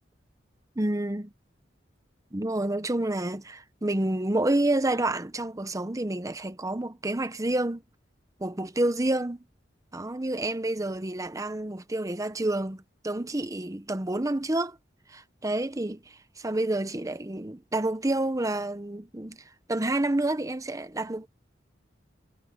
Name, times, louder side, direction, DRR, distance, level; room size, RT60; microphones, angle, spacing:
voice 1, 0.8-1.3 2.3-7.8 8.4-9.4 9.9-14.8 15.1-16.0 16.4-19.4 19.7-21.3, right 1 dB, 20° right, 0.9 m, -29 dB
head